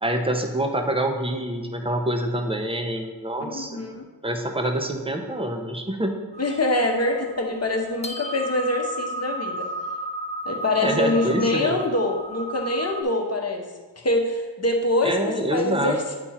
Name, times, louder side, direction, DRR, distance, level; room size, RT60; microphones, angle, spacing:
voice 1, 0.0-3.8 4.2-6.1 10.8-11.7 15.0-16.2, right 1 dB, 15° right, 4 dB, 0.8 m, -26 dB
voice 2, 3.4-4.0 6.4-9.7 10.4-13.6 14.0-16.2, left 2 dB, 35° left, 2 dB, 1.0 m, -24 dB
sound 1, 6.3-13.0, right 1 dB, 15° left, 0.5 m, -34 dB
9.0 x 3.5 x 4.3 m, 1.3 s
wide cardioid pair, 65°, 41 cm